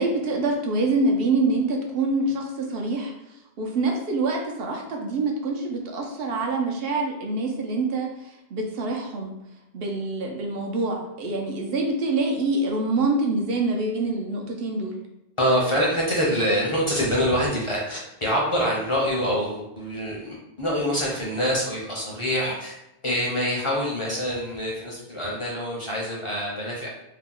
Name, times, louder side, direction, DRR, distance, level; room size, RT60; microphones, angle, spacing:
voice 1, 0.0-3.1 3.6-9.3 9.7-14.9, right 2 dB, 70° right, 1 dB, 0.8 m, -25 dB
voice 2, 15.4-22.7 23.0-26.9, equal, 35° left, -4 dB, 0.6 m, -25 dB
2.8 x 2.1 x 3.7 m, 0.90 s
omnidirectional pair, 1.1 m